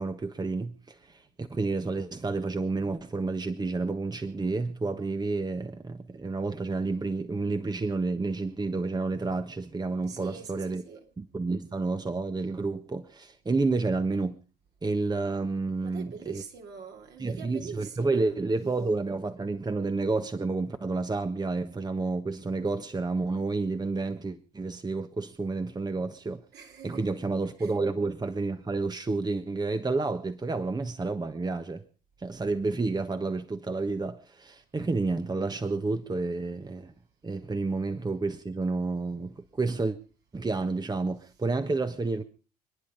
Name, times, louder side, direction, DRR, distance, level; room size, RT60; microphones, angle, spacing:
voice 1, 0.0-10.8 11.2-14.4 14.8-16.4 17.2-26.4 26.8-31.8 32.2-36.9 37.2-40.0 40.3-42.2, right 3 dB, 20° right, 1.4 m, -30 dB
voice 2, 10.1-11.1 15.8-18.3 26.5-27.0 27.6-27.7, right 6 dB, 60° right, 3.4 m, -43 dB
27.0 x 10.5 x 5.1 m
hypercardioid pair, 50°, 19 cm